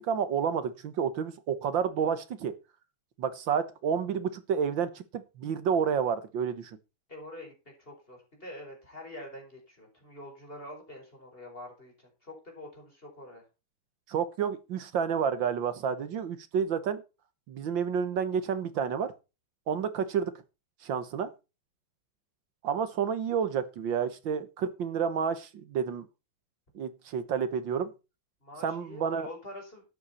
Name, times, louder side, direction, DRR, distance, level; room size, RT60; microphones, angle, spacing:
voice 1, 0.0-2.5 3.2-6.8 14.1-17.0 17.5-19.1 19.7-20.3 20.8-21.3 22.6-26.1 26.7-27.9 28.6-29.3, right 7 dB, 65° right, 1.8 m, -30 dB
voice 2, 7.1-13.4 28.4-29.8, left 1 dB, 25° left, 5.1 m, -46 dB
13.0 x 9.4 x 4.3 m
omnidirectional pair, 2.3 m